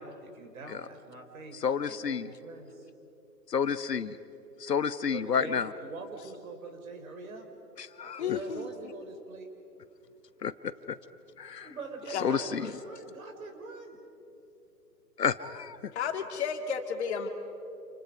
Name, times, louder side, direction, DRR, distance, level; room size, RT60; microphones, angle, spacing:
voice 1, 0.0-2.9 5.1-7.4 8.0-9.5 11.6-14.0, right 3 dB, 55° right, 4 dB, 4.7 m, -44 dB
voice 2, 1.6-2.3 3.5-4.2 4.6-5.7 7.8-8.4 10.4-10.5 10.9-11.0 11.4-11.7 12.2-12.7 15.2-15.9, left 6 dB, 80° left, 13 dB, 1.2 m, -30 dB
voice 3, 8.2-8.9 12.1-12.3 15.9-17.3, left 7 dB, 45° left, 5 dB, 2.3 m, -33 dB
28.5 x 28.5 x 5.3 m, 2.9 s
figure-of-eight pair, 135°, 48 cm